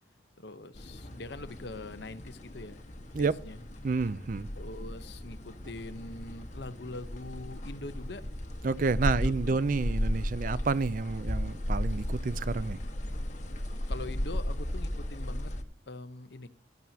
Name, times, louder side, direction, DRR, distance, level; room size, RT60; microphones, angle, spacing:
voice 1, 0.4-2.8 3.2-3.6 4.5-8.2 9.0-9.6 10.4-10.6 13.9-15.5 15.9-16.5, left 2 dB, 60° left, 0.9 m, -43 dB
sound 1, 0.7-15.6, equal, 40° left, 1.5 m, -35 dB
voice 2, 3.8-4.5 8.6-12.8, right 4 dB, 45° right, 0.4 m, -29 dB
15.0 x 12.0 x 2.8 m
head